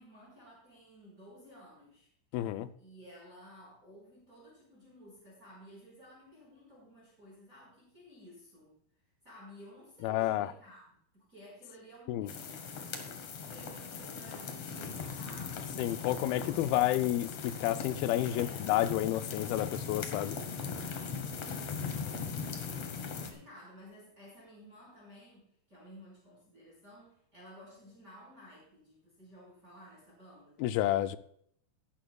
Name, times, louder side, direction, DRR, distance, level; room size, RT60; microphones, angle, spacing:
voice 1, 0.0-2.1 2.8-8.7 9.2-12.6 13.5-15.8 18.3-18.6 21.7-30.6, equal, 20° right, -6 dB, 5.0 m, -55 dB
voice 2, 2.3-2.7 10.0-10.5 12.1-12.3 15.8-20.4 30.6-31.2, left 14 dB, 85° left, 11 dB, 2.4 m, -30 dB
sound 1, 12.3-23.3, left 5 dB, 55° left, 1.9 m, -39 dB
17.5 x 11.5 x 2.3 m, 0.66 s
omnidirectional pair, 4.3 m